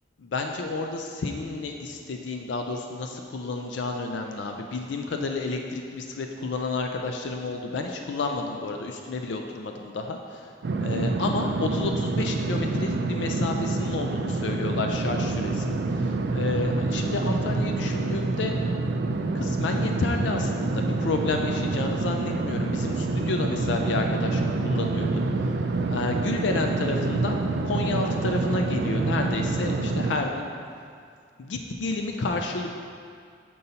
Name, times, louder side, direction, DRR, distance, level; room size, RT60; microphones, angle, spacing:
voice 1, 0.2-10.5 10.8-18.5 19.3-25.2 25.9-27.4 27.6-30.5 31.4-32.7, left 3 dB, 75° left, 3 dB, 0.4 m, -30 dB
sound 1, 10.6-30.2, right 3 dB, 60° right, 0.3 m, -27 dB
7.8 x 5.4 x 2.8 m, 2.2 s
head